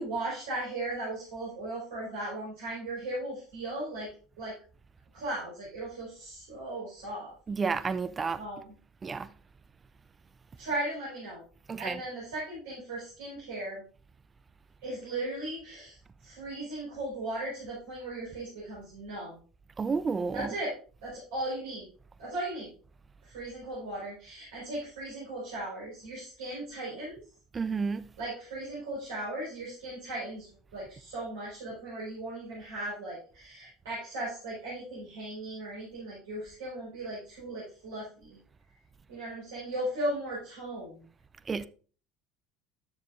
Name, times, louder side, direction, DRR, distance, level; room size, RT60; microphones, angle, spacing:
voice 1, 0.0-4.1 4.4-4.5 5.1-7.3 8.4-8.6 10.6-11.4 11.8-13.8 14.8-16.0 16.2-19.4 20.3-20.7 21.0-21.9 22.2-22.7 23.3-27.2 28.2-38.4 39.1-41.0, right 1 dB, 75° right, 5.0 m, -37 dB
voice 2, 7.5-8.4 9.0-9.3 11.7-12.0 19.8-20.5 27.5-28.1 41.5-41.7, right 5 dB, 25° right, 0.6 m, -31 dB
12.5 x 6.7 x 2.6 m
hypercardioid pair, 70°, 0 cm